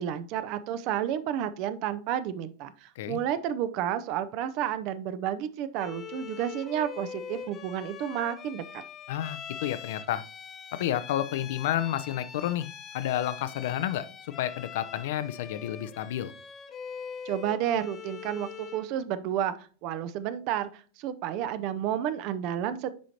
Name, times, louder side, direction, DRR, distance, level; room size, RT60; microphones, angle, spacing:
voice 1, 0.0-8.8 17.2-22.9, right 10 dB, 40° right, 0.6 m, -31 dB
Bowed string instrument, 5.8-18.9, left 7 dB, 30° left, 0.9 m, -43 dB
voice 2, 9.1-10.2 10.8-12.7 12.9-14.0 14.4-16.3, left 12 dB, 55° left, 0.6 m, -30 dB
10.5 x 5.1 x 2.9 m
figure-of-eight pair, 90°, 0 cm